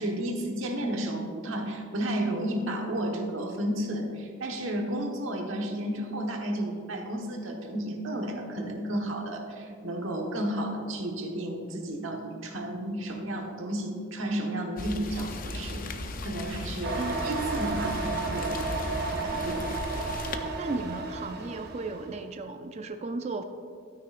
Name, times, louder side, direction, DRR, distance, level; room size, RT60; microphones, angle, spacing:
voice 1, 0.0-19.7, right 1 dB, 75° right, 1 dB, 1.3 m, -32 dB
Rain, 14.8-20.4, left 2 dB, 45° left, 0.6 m, -37 dB
sound 1, 16.8-22.1, right 3 dB, 50° right, 0.9 m, -33 dB
voice 2, 20.6-23.4, right 3 dB, 35° right, 7 dB, 0.4 m, -35 dB
12.5 x 9.4 x 2.5 m, 2.4 s
head